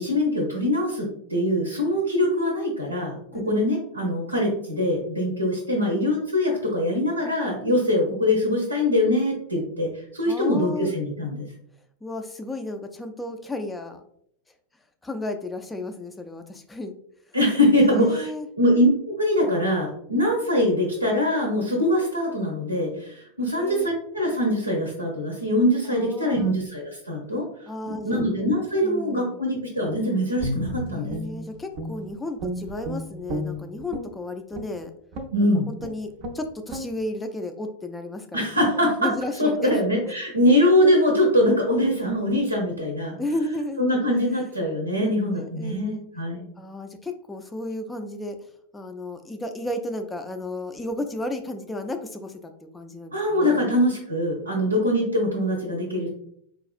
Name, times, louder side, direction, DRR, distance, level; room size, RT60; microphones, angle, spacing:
voice 1, 0.0-11.4 17.3-18.3 18.6-27.4 27.9-31.1 35.3-35.7 38.3-39.1 39.4-43.2 43.8-46.5 53.1-56.1, left 1 dB, 85° right, 0 dB, 0.7 m, -23 dB
voice 2, 10.2-10.9 12.0-14.0 15.0-16.9 17.8-18.5 23.4-23.9 25.9-26.6 27.7-28.2 28.8-29.4 30.9-34.9 35.7-36.1 36.3-38.6 39.0-40.2 43.2-43.8 45.0-46.0 46.6-48.3 48.7-53.8, left 1 dB, 10° left, 6 dB, 0.4 m, -33 dB
Guitar, 30.4-32.1 32.4-34.1 34.5-34.7 35.1-35.4 35.8-35.9 36.2-36.4 36.7-36.9, equal, 45° right, 0.5 m, -32 dB
4.0 x 2.4 x 2.4 m, 0.70 s
figure-of-eight pair, 90°, 0 cm